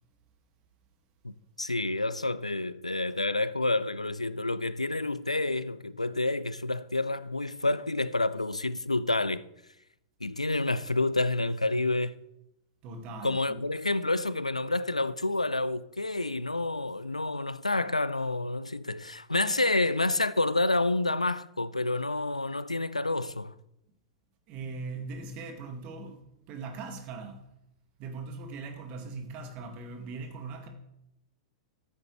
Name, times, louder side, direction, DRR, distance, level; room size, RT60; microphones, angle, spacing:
voice 1, 1.6-9.4 10.2-12.2 13.2-23.5, left 2 dB, 85° left, 0.4 m, -29 dB
voice 2, 12.8-13.6 24.5-26.2 26.5-27.4 28.0-30.7, right 3 dB, 35° right, 2.0 m, -40 dB
14.0 x 8.5 x 3.2 m
figure-of-eight pair, 100°, 3 cm